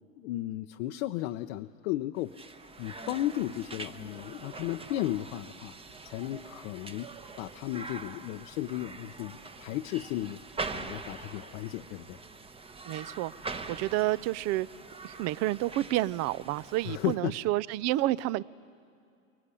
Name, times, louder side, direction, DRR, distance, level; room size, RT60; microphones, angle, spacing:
voice 1, 0.2-2.3 2.8-5.7 6.0-7.1 7.4-10.4 10.7-12.2 16.8-17.3, left 14 dB, 60° left, 5 dB, 0.8 m, -34 dB
sound 1, 2.2-17.2, right 3 dB, 15° right, 1.0 m, -43 dB
voice 2, 12.9-13.3 13.7-14.7 15.0-18.4, right 16 dB, 40° right, 21 dB, 0.6 m, -29 dB
23.0 x 22.5 x 9.9 m, 2.5 s
hypercardioid pair, 115°, 41 cm